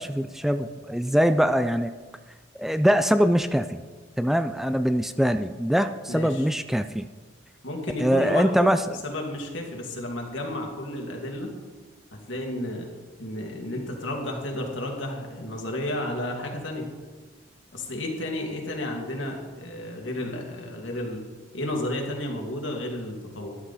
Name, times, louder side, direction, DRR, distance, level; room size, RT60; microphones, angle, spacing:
voice 1, 0.0-1.9 2.6-3.8 4.2-7.1 8.0-9.0, equal, ahead, 10 dB, 0.3 m, -23 dB
voice 2, 6.1-6.5 7.6-8.7 9.0-11.5 12.3-12.9 13.2-16.9 17.7-21.2 21.5-23.6, left 1 dB, 70° left, 1 dB, 2.3 m, -32 dB
13.0 x 11.5 x 4.2 m, 1.4 s
head